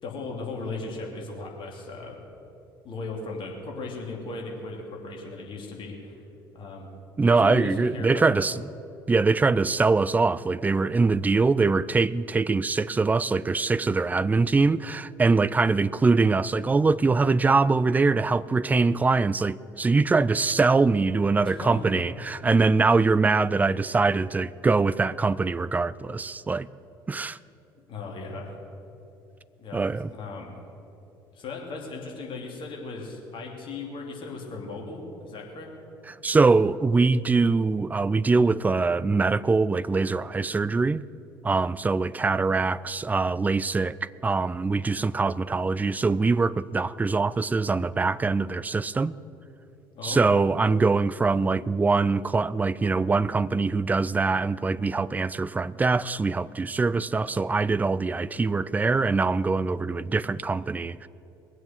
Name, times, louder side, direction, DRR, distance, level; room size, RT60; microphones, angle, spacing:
voice 1, 0.0-2.2 2.8-6.1 6.5-6.9 7.3-8.5 21.4-22.0 27.9-28.6 29.6-29.8 30.1-30.6 31.3-35.7 49.9-50.4, left 3 dB, 45° left, 2.8 m, -37 dB
voice 2, 7.2-8.6 9.1-26.7 27.1-27.4 29.7-30.1 36.1-41.0 41.4-49.1 50.0-61.1, right 4 dB, 15° right, 0.3 m, -23 dB
21.0 x 7.9 x 6.5 m
figure-of-eight pair, 55°, 12 cm